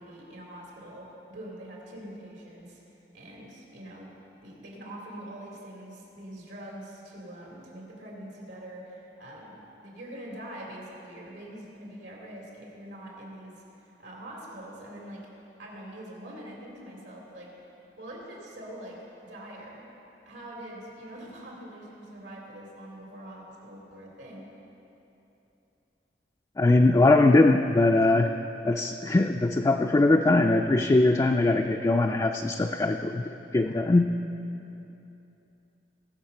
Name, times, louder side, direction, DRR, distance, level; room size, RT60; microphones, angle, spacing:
voice 1, 0.0-2.8 3.1-4.1 4.4-15.3 15.6-17.7 18.0-19.9 20.2-24.5, right 1 dB, 85° right, -2 dB, 3.0 m, -44 dB
voice 2, 26.6-28.3 28.6-33.2 33.5-34.2, left 2 dB, 20° left, 3 dB, 0.3 m, -21 dB
19.5 x 6.8 x 5.5 m, 2.9 s
head